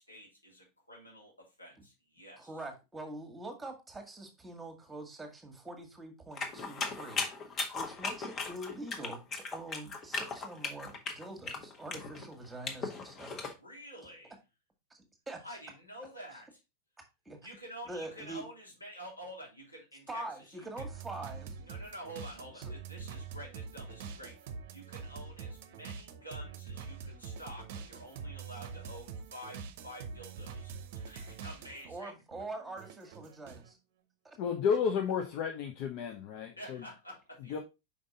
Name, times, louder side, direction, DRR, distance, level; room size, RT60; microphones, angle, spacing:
voice 1, 0.0-2.5 12.8-13.0 13.5-14.3 15.4-16.6 17.4-20.7 21.6-24.4 24.7-32.1 36.6-37.6, equal, 85° left, 2.9 m, -49 dB
voice 2, 2.4-7.2 7.7-13.5 14.9-15.6 17.2-17.4 17.8-18.4 20.1-21.6 22.6-22.7 31.9-33.8 34.2-34.4, right 2 dB, 10° right, 1.6 m, -44 dB
sound 1, 6.4-13.5, left 4 dB, 25° left, 1.3 m, -37 dB
sound 2, 20.8-32.0 32.3-33.7, right 5 dB, 50° right, 0.7 m, -45 dB
voice 3, 34.4-36.8 37.5-37.6, left 7 dB, 45° left, 0.9 m, -32 dB
5.2 x 5.2 x 3.9 m
figure-of-eight pair, 90°, 0 cm